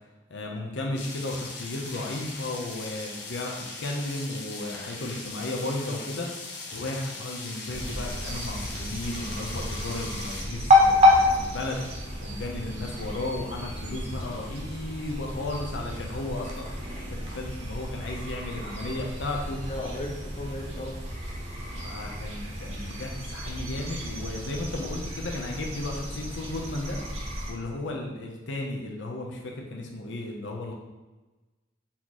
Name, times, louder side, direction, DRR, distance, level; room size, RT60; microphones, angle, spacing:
voice 1, 0.3-6.3 6.7-11.8 12.2-16.7 17.1-19.6 21.8-27.0 27.5-30.7, left 2 dB, 85° left, 0 dB, 0.7 m, -34 dB
sound 1, 0.9-10.4, left 3 dB, 70° left, 1.0 m, -40 dB
sound 2, 7.7-27.5, left 1 dB, 40° right, 0.9 m, -29 dB
voice 2, 19.7-20.9, left 1 dB, 40° left, -1 dB, 0.7 m, -35 dB
4.2 x 3.0 x 3.9 m, 1.1 s
head